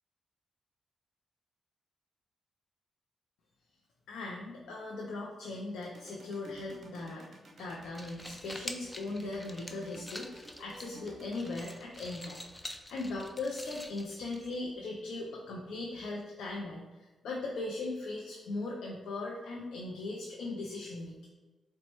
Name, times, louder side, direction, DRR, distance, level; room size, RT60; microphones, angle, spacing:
voice 1, 4.1-7.2 7.6-12.4 12.9-21.3, left 2 dB, 85° left, -3 dB, 0.4 m, -39 dB
sound 1, 5.8-13.6, right 2 dB, 60° right, 0.5 m, -54 dB
sound 2, 7.8-14.8, left 1 dB, 10° left, 0.3 m, -47 dB
4.1 x 2.1 x 2.9 m, 1.2 s
cardioid pair, 70°, 0 cm